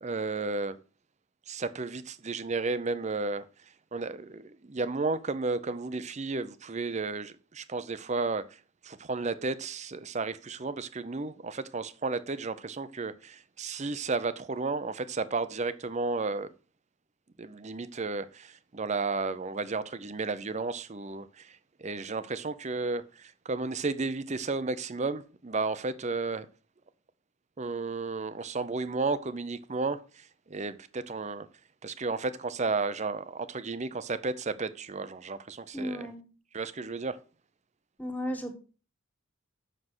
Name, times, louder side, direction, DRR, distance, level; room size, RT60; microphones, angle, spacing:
voice 1, 0.0-0.8 1.5-3.5 3.9-16.5 17.4-26.5 27.6-31.5 31.8-36.1 36.5-37.2, right 3 dB, 30° right, 0.6 m, -33 dB
voice 2, 35.7-36.2 38.0-38.5, equal, 10° left, 1.5 m, -34 dB
7.6 x 6.5 x 6.1 m
head